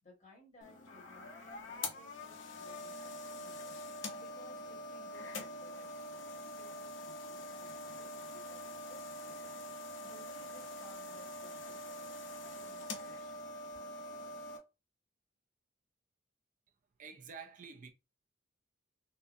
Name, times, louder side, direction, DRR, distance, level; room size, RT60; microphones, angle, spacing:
voice 1, 0.0-9.6 10.0-14.0, left 1 dB, 40° left, 1.5 m, -61 dB
sound 1, 0.6-14.6, left 1 dB, 70° left, 0.7 m, -45 dB
voice 2, 17.0-17.9, right 5 dB, 40° right, 0.4 m, -49 dB
3.7 x 2.0 x 2.5 m
head